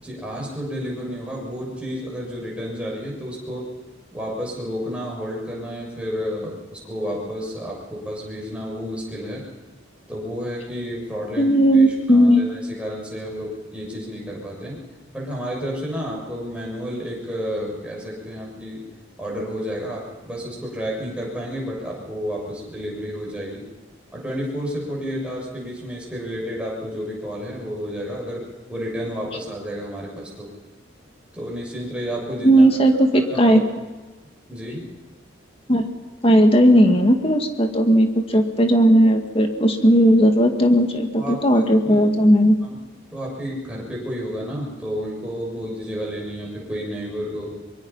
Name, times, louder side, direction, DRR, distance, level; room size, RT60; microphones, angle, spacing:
voice 1, 0.0-3.7 4.1-9.4 10.1-14.8 15.1-18.8 19.2-23.6 24.1-28.4 28.7-30.5 31.3-32.7 33.1-33.6 34.5-34.9 41.2-42.0 42.6-42.8 43.1-47.6, equal, 5° right, -4 dB, 7.1 m, -31 dB
voice 2, 11.4-12.4 32.4-33.6 35.7-35.9 36.2-42.6, equal, 30° left, 5 dB, 2.2 m, -16 dB
24.5 x 23.0 x 5.7 m, 1.2 s
head